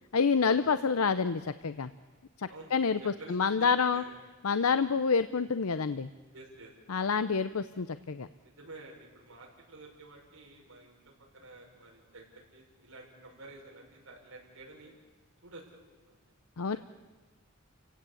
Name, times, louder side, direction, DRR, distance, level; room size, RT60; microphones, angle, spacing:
voice 1, 0.1-1.9 2.4-4.0 4.4-6.1 6.9-8.3 16.6-16.8, left 5 dB, 85° left, 12 dB, 0.7 m, -28 dB
voice 2, 2.5-2.8 3.2-4.2 6.3-6.7 8.4-12.2 12.5-14.9 15.4-15.8 16.0-16.2 16.6-16.8, right 2 dB, 70° right, -2 dB, 6.5 m, -51 dB
30.0 x 17.0 x 8.6 m, 1.4 s
head